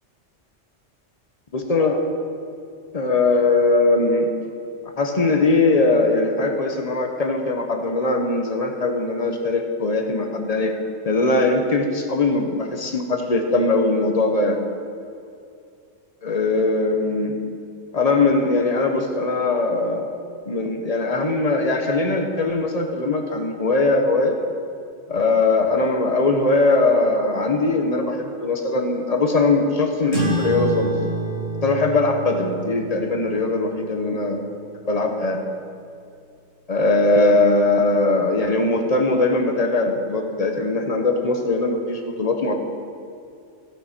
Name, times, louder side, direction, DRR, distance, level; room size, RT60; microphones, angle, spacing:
voice 1, 1.5-2.0 2.9-4.3 5.0-10.7 11.0-14.6 16.2-17.4 17.9-20.1 20.4-24.3 25.1-30.9 31.6-34.4 34.9-35.4 36.7-42.5, left 3 dB, 35° left, 4 dB, 1.1 m, -20 dB
sound 1, 30.1-35.0, right 1 dB, 55° right, 2.4 m, -28 dB
15.5 x 8.4 x 4.4 m, 2.5 s
omnidirectional pair, 1.2 m